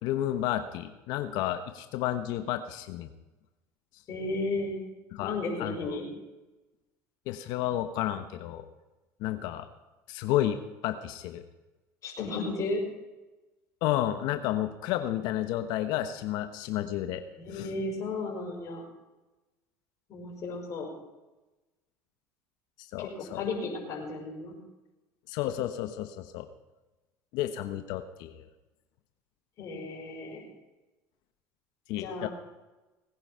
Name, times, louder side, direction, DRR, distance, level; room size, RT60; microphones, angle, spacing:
voice 1, 0.0-3.1 5.1-5.3 5.6-5.9 7.3-8.6 9.2-9.7 10.1-11.4 13.8-17.2 17.5-17.7 22.9-23.4 25.3-26.5 27.3-28.4 31.9-32.3, left 12 dB, 70° left, 9 dB, 1.0 m, -31 dB
voice 2, 4.1-4.8 5.2-6.1 12.0-12.8 17.4-18.8 20.1-20.9 23.0-24.6 29.6-30.4 32.0-32.3, left 3 dB, 45° left, -2 dB, 5.3 m, -34 dB
19.5 x 9.8 x 5.6 m, 1.1 s
supercardioid pair, 100°, 8 cm